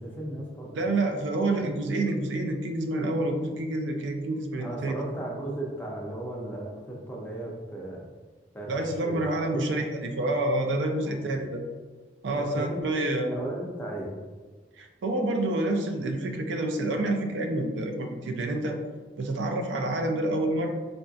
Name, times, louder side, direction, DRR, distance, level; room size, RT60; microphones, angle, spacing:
voice 1, 0.0-0.9 4.6-8.1 8.5-9.8 10.8-11.2 12.3-12.9 13.2-14.2, right 1 dB, 10° left, -3 dB, 0.5 m, -36 dB
voice 2, 0.8-5.0 8.7-11.6 12.2-13.3 14.8-18.8 19.2-20.7, right 2 dB, 80° right, 4 dB, 0.4 m, -28 dB
4.2 x 2.6 x 2.3 m, 1.4 s
head